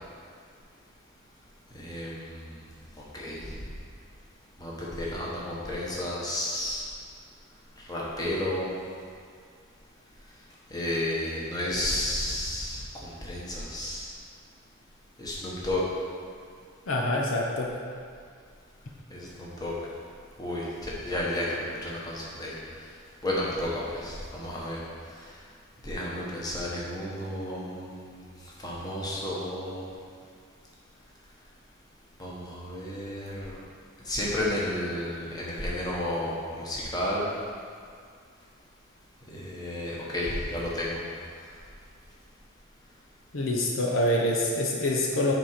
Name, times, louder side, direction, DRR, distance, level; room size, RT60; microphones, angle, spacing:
voice 1, 1.7-2.5 3.1-3.6 4.6-6.9 7.9-8.7 10.7-14.1 15.2-15.8 19.1-19.7 20.4-22.5 23.2-24.8 25.8-28.2 28.6-29.9 32.2-33.6 34.0-37.3 39.3-41.0, left 1 dB, 20° left, -5 dB, 1.3 m, -32 dB
voice 2, 16.9-17.7 43.3-45.3, left 1 dB, 70° left, -1 dB, 0.9 m, -26 dB
7.4 x 4.9 x 5.8 m, 2.2 s
head